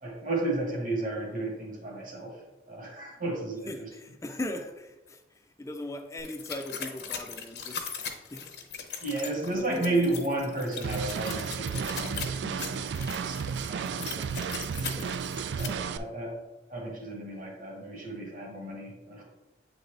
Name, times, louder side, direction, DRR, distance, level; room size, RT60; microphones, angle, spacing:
voice 1, 0.0-2.4 2.7-3.9 9.0-13.4 13.7-14.1 15.5-16.4 16.7-19.2, right 2 dB, 50° right, 1.5 m, -33 dB
voice 2, 3.7-5.2 5.6-7.9 8.3-8.6 9.4-10.0 13.9-14.4 14.8-15.2, left 1 dB, 15° left, 0.4 m, -39 dB
sound 1, 6.2-15.7, left 6 dB, 60° left, 0.8 m, -40 dB
sound 2, 10.8-16.0, right 6 dB, 75° right, 0.3 m, -33 dB
8.2 x 4.0 x 3.3 m
head